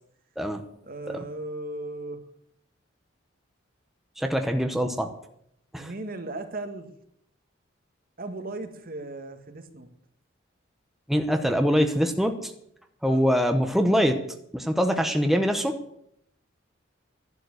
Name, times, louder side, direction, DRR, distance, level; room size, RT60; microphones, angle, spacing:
voice 1, 0.9-2.2 5.8-6.9 8.2-9.9 13.1-13.2, right 2 dB, 50° right, 8 dB, 1.7 m, -36 dB
voice 2, 4.2-5.1 5.7-5.9 11.1-12.5 13.0-14.2 14.5-15.8, equal, ahead, 5 dB, 1.0 m, -23 dB
12.0 x 11.0 x 8.0 m, 0.74 s
head